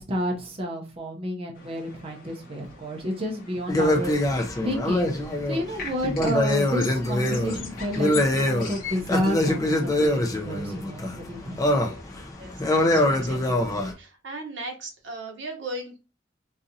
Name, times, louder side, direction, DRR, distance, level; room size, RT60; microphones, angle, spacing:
voice 1, 0.0-11.6, equal, 30° right, 0 dB, 0.6 m, -31 dB
sound 1, 1.5-13.2, left 5 dB, 50° left, 1.0 m, -43 dB
sound 2, 3.7-13.9, left 1 dB, 20° left, 0.5 m, -24 dB
voice 2, 11.6-12.0 12.4-16.0, right 1 dB, 70° right, 4 dB, 0.9 m, -38 dB
3.8 x 2.7 x 2.6 m, 0.30 s
head